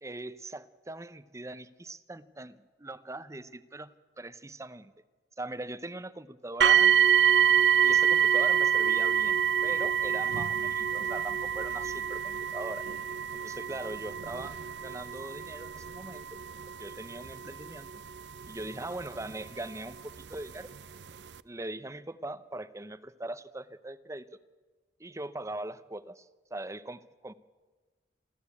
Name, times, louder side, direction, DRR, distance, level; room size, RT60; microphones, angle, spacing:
voice 1, 0.0-4.9 5.4-7.1 7.8-12.8 13.3-14.6 14.8-16.4 16.8-17.9 18.5-20.7 21.4-24.3 25.0-27.3, right 2 dB, 15° right, 14 dB, 0.8 m, -41 dB
sound 1, 6.6-19.5 20.3-20.4 21.0-21.1, right 8 dB, 75° right, 0.6 m, -26 dB
27.5 x 13.5 x 8.4 m, 1.3 s
head